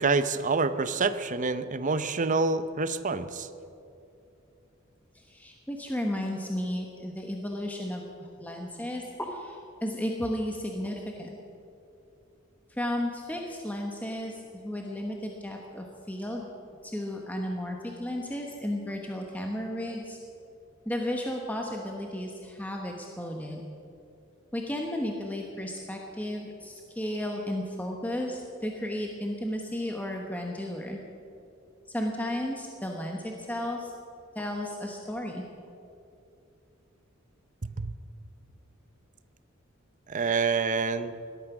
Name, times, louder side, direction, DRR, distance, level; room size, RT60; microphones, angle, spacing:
voice 1, 0.0-3.5 37.6-37.9 40.1-41.1, right 4 dB, 40° right, 12 dB, 0.7 m, -27 dB
voice 2, 5.1-11.4 12.7-16.5 16.8-20.2 20.9-23.6 24.5-31.0 31.9-33.9 34.3-35.4, left 1 dB, 10° left, 1 dB, 1.1 m, -34 dB
18.5 x 12.5 x 6.1 m, 2.7 s
head